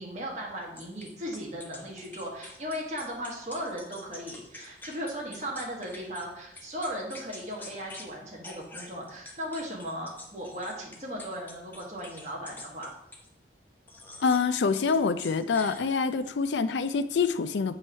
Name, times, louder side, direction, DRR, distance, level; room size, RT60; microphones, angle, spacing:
voice 1, 0.0-12.9, equal, 40° right, -2 dB, 1.6 m, -37 dB
sound 1, 0.8-6.3 6.6-8.1 8.4-13.3 13.9-14.5 14.8-16.2, left 2 dB, 10° left, 0.8 m, -46 dB
voice 2, 14.2-17.8, left 5 dB, 80° left, 13 dB, 0.4 m, -26 dB
7.8 x 3.0 x 5.5 m, 0.83 s
head